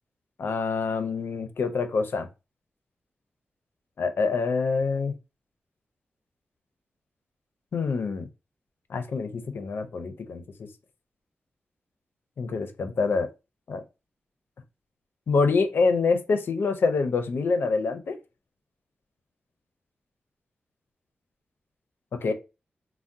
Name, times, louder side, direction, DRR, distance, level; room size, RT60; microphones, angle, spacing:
voice 1, 0.4-2.3 4.0-5.1 7.7-8.3 8.9-10.4 12.4-13.3 13.7-13.8 15.3-18.2 22.2-22.3, left 4 dB, 70° left, 0.5 m, -26 dB
3.5 x 2.1 x 2.6 m
wide cardioid pair, 125°, 4 cm